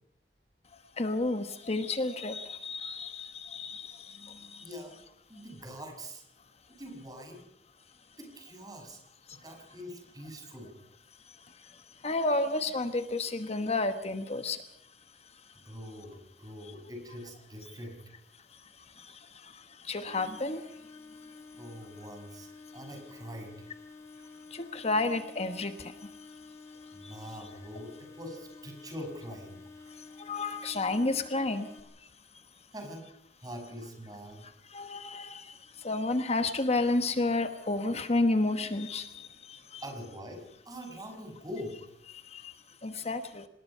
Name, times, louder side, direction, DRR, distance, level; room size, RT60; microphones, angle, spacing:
voice 1, 1.0-4.6 9.3-9.4 11.3-14.6 18.5-20.8 24.5-26.4 26.8-27.3 29.9-31.7 32.0-32.1 34.7-39.8 42.1-42.5 42.8-43.5, left 2 dB, 40° left, 8 dB, 1.2 m, -32 dB
voice 2, 4.6-4.9 5.3-6.2 6.7-7.4 8.2-9.0 9.3-10.7 15.6-18.0 21.6-23.5 24.2-24.3 26.9-29.9 32.7-33.1 33.4-34.5 39.8-41.8, equal, 20° right, 4 dB, 6.1 m, -44 dB
sound 1, 20.1-31.8, left 4 dB, 15° left, 4.0 m, -50 dB
25.5 x 20.0 x 5.6 m, 0.74 s
head